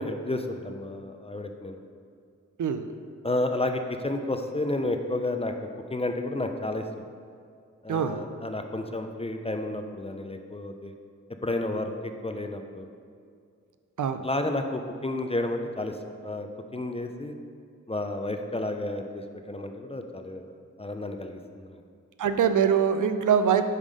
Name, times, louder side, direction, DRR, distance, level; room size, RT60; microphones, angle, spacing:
voice 1, 0.0-1.8 3.2-5.5 5.9-6.9 7.8-10.9 11.4-11.9 12.2-12.9 14.2-16.0 16.2-17.3 17.9-21.8, left 2 dB, 20° left, 5 dB, 0.4 m, -31 dB
voice 2, 7.9-8.2 14.0-14.2 22.2-23.6, right 7 dB, 75° right, 9 dB, 0.4 m, -23 dB
5.4 x 5.0 x 5.2 m, 2.3 s
wide cardioid pair, 75°, 31 cm